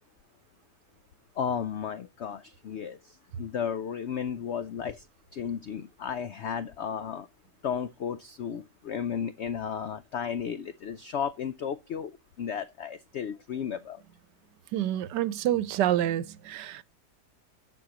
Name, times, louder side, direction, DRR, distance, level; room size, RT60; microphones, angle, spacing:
voice 1, 1.4-5.1 5.3-7.3 7.6-14.0, left 7 dB, 85° left, 0.6 m, -34 dB
voice 2, 14.7-16.8, right 12 dB, 85° right, 1.3 m, -28 dB
11.5 x 6.3 x 2.9 m
omnidirectional pair, 1.8 m